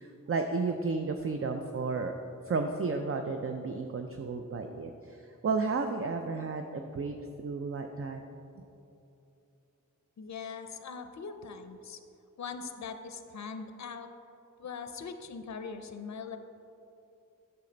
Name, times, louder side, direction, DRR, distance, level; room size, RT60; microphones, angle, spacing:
voice 1, 0.0-2.1 2.5-8.2, right 4 dB, 45° right, 5 dB, 0.4 m, -33 dB
voice 2, 10.2-12.0 12.4-14.1 14.6-16.4, left 5 dB, 60° left, 8 dB, 0.5 m, -41 dB
8.4 x 5.9 x 3.9 m, 2.7 s
wide cardioid pair, 45°, 32 cm